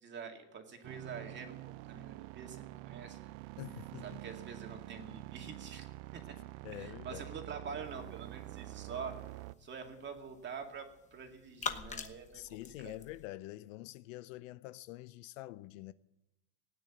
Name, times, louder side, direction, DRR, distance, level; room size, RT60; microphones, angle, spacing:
voice 1, 0.0-3.3 4.0-5.9 6.1-6.3 6.7-9.1 9.6-12.4 12.8-13.0, right 6 dB, 25° right, 2.3 m, -46 dB
sound 1, 0.8-9.5, right 18 dB, 45° right, 0.5 m, -47 dB
voice 2, 3.6-4.2 6.6-7.2 12.3-15.9, left 17 dB, 60° left, 0.7 m, -46 dB
sound 2, 7.8-13.3, left 6 dB, 15° left, 1.0 m, -46 dB
17.5 x 9.3 x 8.7 m
supercardioid pair, 135°, 45 cm